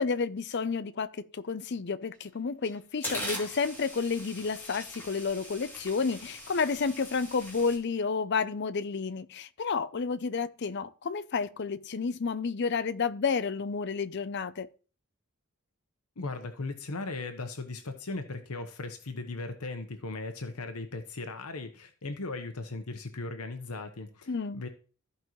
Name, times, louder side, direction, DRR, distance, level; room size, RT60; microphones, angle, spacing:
voice 1, 0.0-14.7 24.3-24.6, left 5 dB, 50° left, 0.5 m, -31 dB
sound 1, 2.1-2.3 2.6-7.8, left 1 dB, 10° left, 2.8 m, -41 dB
voice 2, 16.2-24.7, left 3 dB, 85° left, 1.0 m, -38 dB
14.5 x 5.4 x 3.1 m
head